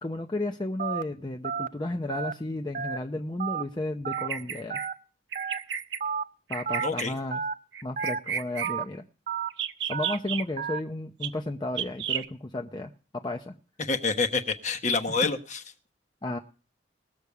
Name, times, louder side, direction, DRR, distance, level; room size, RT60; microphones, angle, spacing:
voice 1, 0.0-4.8 6.5-7.4 7.8-9.0 9.9-12.9 13.2-13.5 15.2-15.3 16.2-16.4, left 2 dB, 25° left, 3 dB, 0.6 m, -33 dB
Telephone, 0.8-1.0 1.4-1.7 2.1-2.3 2.7-3.0 3.4-3.6 4.0-4.3 4.7-4.9 5.4-5.6 6.0-6.2 6.7-6.9 7.3-7.5 8.0-8.2 8.6-8.8 9.3-9.5 9.9-10.1 10.6-10.8, right 6 dB, 45° right, 0.5 m, -31 dB
Bird vocalization bird call bird song, 4.1-4.9 5.3-6.0 6.5-7.1 7.7-8.7 9.5-10.4 11.2-11.3 11.8-12.3, right 8 dB, 80° right, 0.9 m, -32 dB
voice 2, 6.8-7.2 13.8-15.6, left 4 dB, 40° left, 6 dB, 1.1 m, -27 dB
20.0 x 7.0 x 4.7 m, 0.38 s
head